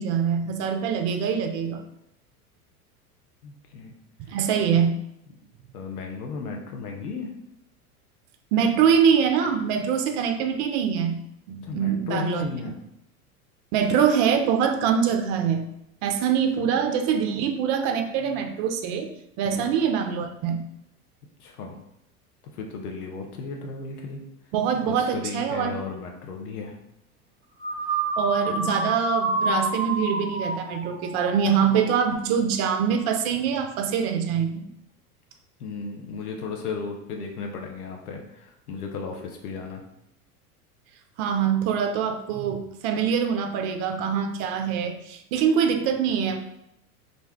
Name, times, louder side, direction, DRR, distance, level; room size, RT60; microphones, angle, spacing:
voice 1, 0.0-1.8 4.3-5.0 8.5-11.2 11.5-12.4 13.7-15.7 16.0-19.1 19.4-20.6 24.5-25.8 28.2-34.7 41.2-46.4, right 7 dB, 45° right, 6 dB, 0.4 m, -24 dB
voice 2, 3.4-3.9 4.3-4.4 5.7-7.3 11.6-12.7 16.6-16.7 19.4-19.7 21.4-21.8 22.5-24.2 24.8-26.7 35.6-39.8, left 4 dB, 80° left, 2 dB, 0.6 m, -35 dB
sound 1, 27.6-32.1, right 2 dB, 30° right, 0.9 m, -29 dB
2.6 x 2.2 x 3.4 m, 0.80 s
hypercardioid pair, 90°, 45 cm